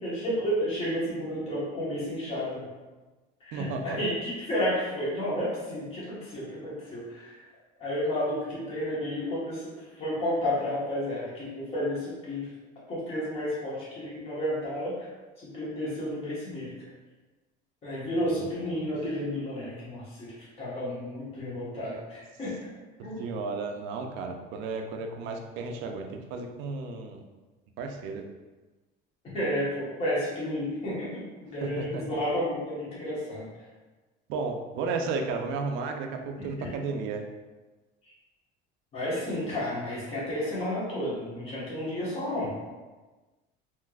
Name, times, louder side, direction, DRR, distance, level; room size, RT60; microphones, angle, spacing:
voice 1, 0.0-2.7 3.4-7.4 7.8-9.7 10.0-12.5 12.9-15.1 15.4-16.7 17.8-22.6 23.0-23.2 29.3-33.4 36.4-36.7 38.9-42.5, equal, 30° left, -8 dB, 1.2 m, -31 dB
voice 2, 3.5-4.0 18.2-18.7 23.0-27.2 27.8-28.3 31.6-32.0 34.3-37.3, right 4 dB, 65° right, 4 dB, 0.5 m, -33 dB
3.4 x 2.9 x 2.3 m, 1.2 s
cardioid pair, 150°, 21 cm